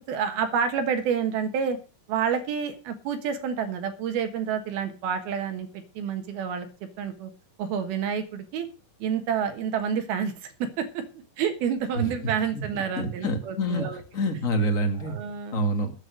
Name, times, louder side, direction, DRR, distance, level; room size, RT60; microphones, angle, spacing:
voice 1, 0.1-1.8 2.1-5.7 6.0-6.7 7.0-7.3 7.6-8.7 9.0-10.3 10.6-11.0 11.4-14.0 15.0-15.6, right 7 dB, 65° right, 8 dB, 2.9 m, -28 dB
voice 2, 13.0-13.9 14.1-15.2 15.5-15.9, equal, 45° left, 4 dB, 1.0 m, -26 dB
13.0 x 8.3 x 6.4 m, 0.34 s
omnidirectional pair, 5.2 m